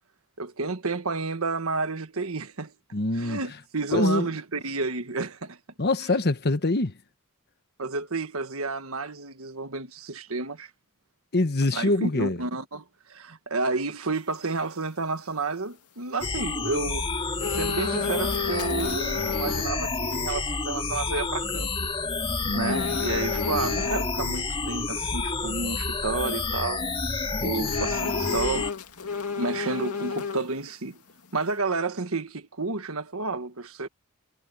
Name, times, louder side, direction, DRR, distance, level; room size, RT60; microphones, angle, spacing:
voice 1, 0.4-2.7 3.1-5.6 6.0-6.2 7.8-10.7 11.7-17.1 17.5-21.9 22.5-26.9 27.4-28.7 29.4-31.0 31.3-33.9, right 3 dB, 70° right, 1.6 m, -31 dB
voice 2, 2.9-3.4 3.9-4.3 5.8-6.9 11.3-12.4 22.4-23.0 27.4-27.7, left 2 dB, 45° left, 1.3 m, -25 dB
sound 1, 16.2-28.7, left 3 dB, 25° left, 2.4 m, -29 dB
sound 2, 17.1-30.3, equal, 50° right, 3.6 m, -51 dB
sound 3, 17.4-19.7 20.1-20.2 22.6-24.1 27.6-30.7 31.1-31.2, left 5 dB, 90° left, 2.1 m, -31 dB
head